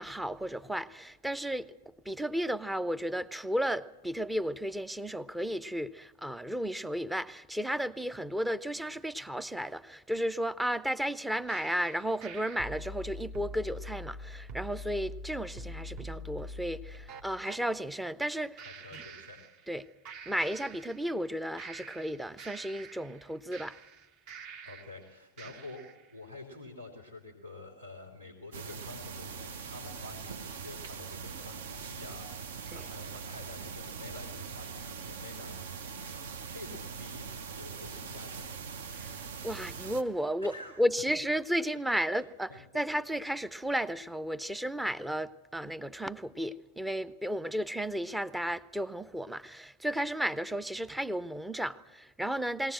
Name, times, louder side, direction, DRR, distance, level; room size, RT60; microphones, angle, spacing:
voice 1, 0.0-1.7 2.0-18.7 18.9-19.0 19.7-19.9 20.3-23.8 32.7-32.9 39.0-52.7, equal, 5° right, 0.6 m, -33 dB
sound 1, 11.5-17.6 18.6-19.8 20.1-21.3 21.6-25.0 25.4-26.0, equal, 40° right, 1.2 m, -45 dB
voice 2, 18.6-19.4 24.6-25.8 26.1-38.6 40.4-40.8 42.1-42.2 42.5-42.6, left 2 dB, 90° right, 3.4 m, -48 dB
sound 2, 28.5-40.0, right 6 dB, 60° right, 1.0 m, -42 dB
21.5 x 18.5 x 7.7 m
figure-of-eight pair, 90°, 0 cm